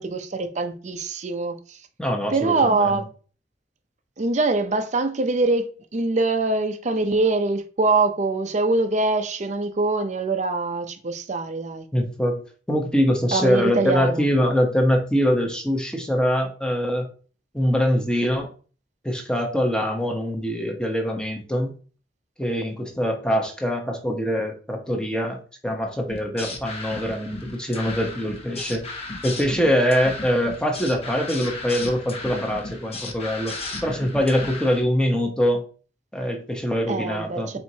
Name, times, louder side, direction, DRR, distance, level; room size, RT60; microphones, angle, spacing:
voice 1, 0.0-1.8 2.3-3.1 4.2-11.9 13.3-14.3 36.9-37.6, right 3 dB, 40° right, 0.6 m, -23 dB
voice 2, 2.0-2.9 11.9-12.4 12.7-17.1 17.5-18.5 19.0-21.7 22.4-28.8 29.2-33.6 33.8-35.6 36.1-37.6, equal, 5° left, 0.9 m, -23 dB
sound 1, 26.1-34.8, left 2 dB, 35° left, 0.9 m, -35 dB
4.4 x 4.3 x 2.7 m
head